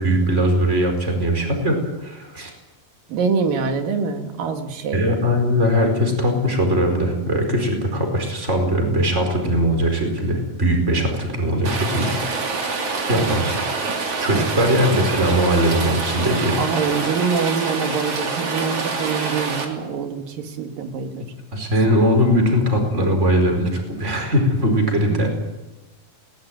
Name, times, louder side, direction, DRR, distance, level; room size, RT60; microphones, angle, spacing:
voice 1, 0.0-2.5 4.9-12.8 13.1-13.5 14.2-16.6 21.5-25.3, equal, 20° right, 4 dB, 4.9 m, -20 dB
voice 2, 3.1-5.0 13.1-13.4 14.3-14.8 16.6-21.3 24.8-25.2, right 5 dB, 75° right, 6 dB, 3.7 m, -25 dB
Rain, 11.6-19.6, right 4 dB, 45° right, 3.7 m, -26 dB
21.5 x 18.5 x 9.4 m, 1.1 s
omnidirectional pair, 4.0 m